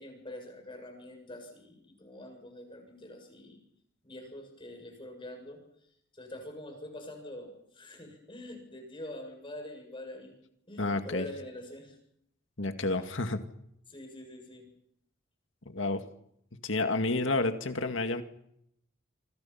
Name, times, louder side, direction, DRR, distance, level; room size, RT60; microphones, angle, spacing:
voice 1, 0.0-3.6 4.0-5.6 6.1-10.4 10.7-12.0 13.9-14.7, left 1 dB, 25° left, 4 dB, 7.2 m, -45 dB
voice 2, 10.8-11.3 12.6-13.4 15.7-16.0 16.6-18.2, left 2 dB, 70° left, 7 dB, 2.1 m, -30 dB
28.5 x 25.5 x 5.8 m, 0.74 s
head